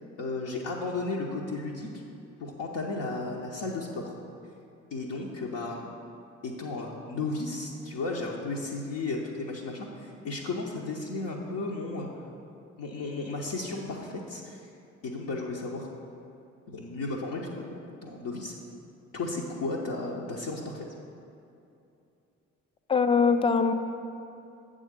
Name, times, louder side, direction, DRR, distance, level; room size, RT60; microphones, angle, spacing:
voice 1, 0.2-2.0 2.4-4.2 4.9-5.9 6.4-12.1 12.8-14.7 15.0-15.9 16.7-18.5 19.1-20.8, left 3 dB, 55° left, -2 dB, 0.8 m, -34 dB
voice 2, 22.9-23.7, left 5 dB, 15° left, 8 dB, 0.5 m, -22 dB
7.8 x 3.8 x 6.6 m, 2.7 s
figure-of-eight pair, 40°, 38 cm